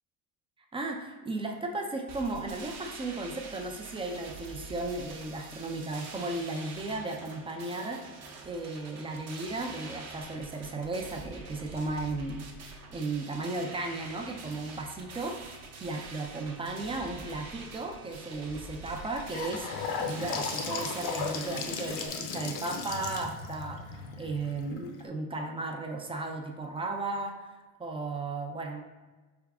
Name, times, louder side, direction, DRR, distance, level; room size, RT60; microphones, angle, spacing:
voice 1, 0.7-8.0 8.4-12.4 12.9-19.7 20.0-28.8, right 2 dB, 15° right, 2 dB, 0.4 m, -35 dB
sound 1, 2.1-22.1, right 4 dB, 40° right, 0.8 m, -46 dB
Gurgling / Sink (filling or washing) / Bathtub (filling or washing), 18.9-25.0, left 5 dB, 55° left, 0.7 m, -36 dB
3.9 x 3.5 x 3.5 m, 1.2 s
supercardioid pair, 115°, 39 cm